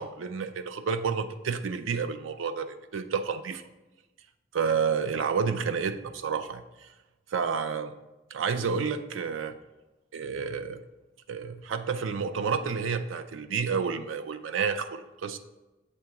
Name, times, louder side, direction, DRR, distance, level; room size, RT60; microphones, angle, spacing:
voice 1, 0.0-3.6 4.5-6.9 7.3-7.9 8.3-9.6 10.1-10.8 11.3-15.4, right 6 dB, 85° right, 10 dB, 0.4 m, -30 dB
7.8 x 2.8 x 4.5 m, 1.1 s
head